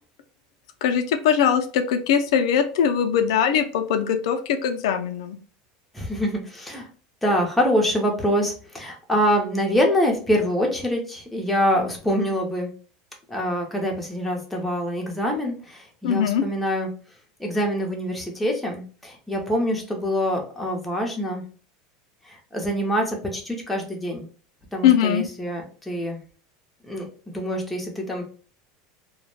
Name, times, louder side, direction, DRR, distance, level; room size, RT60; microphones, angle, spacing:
voice 1, 0.8-5.4 16.0-16.4 24.8-25.2, left 8 dB, 80° left, 7 dB, 0.3 m, -21 dB
voice 2, 5.9-6.9 7.2-12.7 13.3-16.9 17.4-21.4 22.2-24.3 24.7-26.2 26.9-28.2, equal, 5° left, 0 dB, 0.6 m, -25 dB
2.2 x 2.0 x 3.0 m, 0.40 s
supercardioid pair, 145°, 3 cm